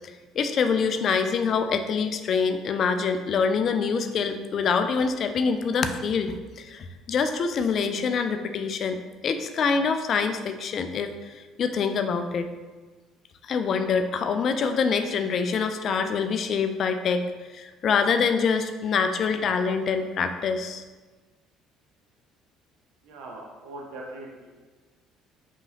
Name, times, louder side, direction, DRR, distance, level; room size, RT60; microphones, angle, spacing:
voice 1, 0.3-12.5 13.5-20.8, left 5 dB, 45° left, 7 dB, 0.3 m, -25 dB
voice 2, 23.0-24.5, right 2 dB, 60° right, -1 dB, 0.6 m, -41 dB
5.3 x 2.8 x 2.6 m, 1.3 s
figure-of-eight pair, 55°, 0 cm